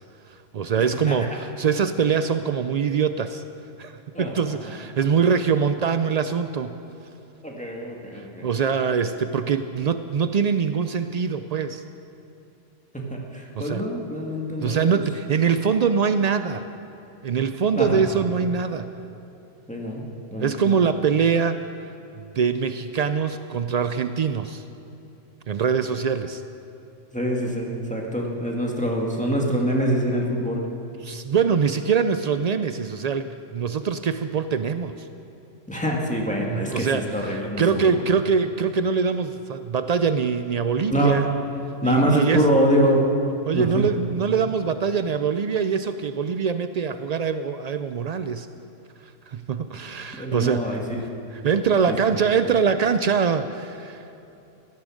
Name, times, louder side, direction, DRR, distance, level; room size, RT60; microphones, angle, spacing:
voice 1, 0.3-3.4 3.8-6.8 8.1-11.8 13.6-13.8 14.6-16.7 17.2-18.9 20.4-21.6 22.2-24.6 25.5-26.4 31.0-35.1 36.5-41.3 41.8-42.4 43.5-48.5 49.3-50.8 51.3-54.1, right 6 dB, 85° right, 10 dB, 0.3 m, -23 dB
voice 2, 4.1-4.5 7.4-8.5 12.9-15.0 17.7-18.0 19.7-20.1 20.3-20.8 27.1-30.6 35.7-37.9 40.9-41.2 41.8-43.1 43.5-43.8 50.1-50.8 51.9-52.0, equal, 5° left, -2 dB, 2.0 m, -24 dB
16.5 x 12.5 x 6.4 m, 2.8 s
omnidirectional pair, 1.3 m